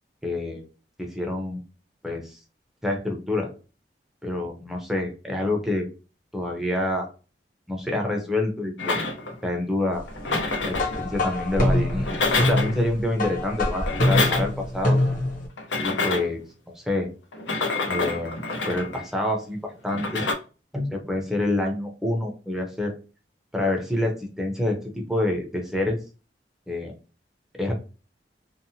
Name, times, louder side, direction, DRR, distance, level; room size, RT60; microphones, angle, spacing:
voice 1, 0.2-0.6 1.0-1.6 2.0-2.4 2.8-3.5 4.2-5.9 6.3-7.1 7.7-9.0 9.4-10.0 10.6-15.0 15.8-16.4 16.8-17.1 17.9-20.2 20.7-22.9 23.5-26.0 26.7-26.9 27.6-27.7, left 1 dB, ahead, 1 dB, 0.5 m, -27 dB
sound 1, 8.8-9.4 10.1-11.0 11.9-12.8 13.7-14.7 15.6-16.4 17.3-19.0 19.9-20.3, left 3 dB, 85° left, 0.7 m, -27 dB
sound 2, 10.7-15.5, left 1 dB, 50° left, 0.7 m, -24 dB
2.7 x 2.0 x 2.7 m, 0.33 s
head